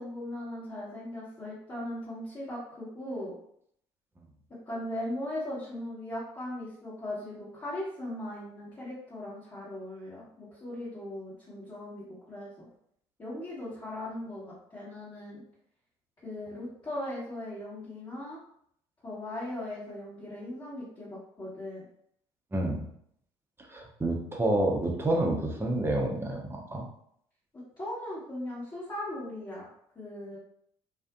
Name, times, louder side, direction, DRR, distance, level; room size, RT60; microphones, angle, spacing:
voice 1, 0.0-3.3 4.7-12.7 13.2-15.4 16.2-18.4 19.0-21.8 27.8-29.7 29.9-30.4, left 1 dB, 25° left, -11 dB, 1.2 m, -38 dB
voice 2, 22.5-22.8 23.7-26.9, right 1 dB, 15° right, 1 dB, 0.7 m, -28 dB
2.5 x 2.4 x 2.3 m, 0.70 s
hypercardioid pair, 55°, 15 cm